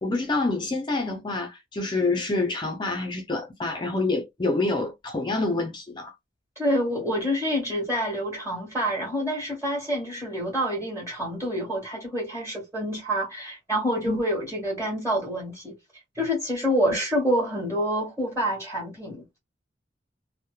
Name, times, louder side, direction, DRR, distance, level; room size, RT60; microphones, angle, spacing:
voice 1, 0.0-6.1 14.1-14.2, left 2 dB, 25° left, 0.5 m, -27 dB
voice 2, 6.5-15.8 16.1-19.4, equal, 15° right, 1.4 m, -27 dB
3.0 x 2.1 x 2.2 m
head